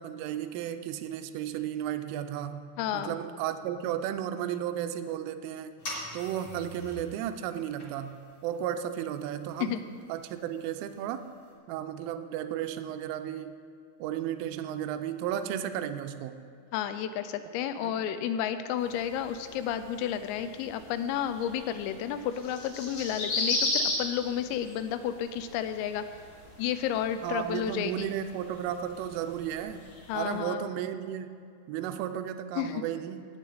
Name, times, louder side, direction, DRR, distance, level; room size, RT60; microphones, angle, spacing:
voice 1, 0.0-2.7 2.9-5.7 6.1-11.3 11.7-13.5 14.0-16.4 17.8-17.9 27.2-29.8 30.1-31.3 31.7-33.3, right 10 dB, 85° right, 9 dB, 2.9 m, -34 dB
voice 2, 2.8-3.2 9.6-9.8 16.7-26.0 26.6-28.1 30.1-30.7 32.6-32.8, left 9 dB, 85° left, 10 dB, 3.2 m, -31 dB
sound 1, 5.8-11.5, left 1 dB, 35° left, 2.8 m, -46 dB
sound 2, 18.8-30.3, left 2 dB, 55° left, 3.5 m, -37 dB
17.5 x 8.2 x 4.0 m, 2.4 s
omnidirectional pair, 6.0 m